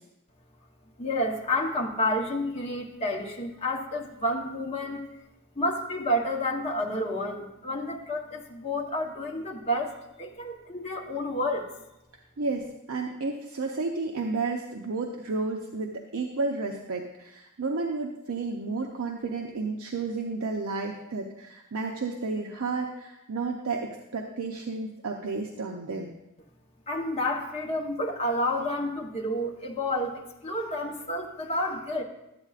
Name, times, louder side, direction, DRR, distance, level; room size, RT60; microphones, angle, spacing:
voice 1, 1.0-5.1 5.5-11.7 26.9-32.0, left 1 dB, 30° left, -1 dB, 1.0 m, -30 dB
voice 2, 12.4-26.1, right 3 dB, 75° right, 1 dB, 0.6 m, -32 dB
12.0 x 8.2 x 2.4 m, 0.90 s
head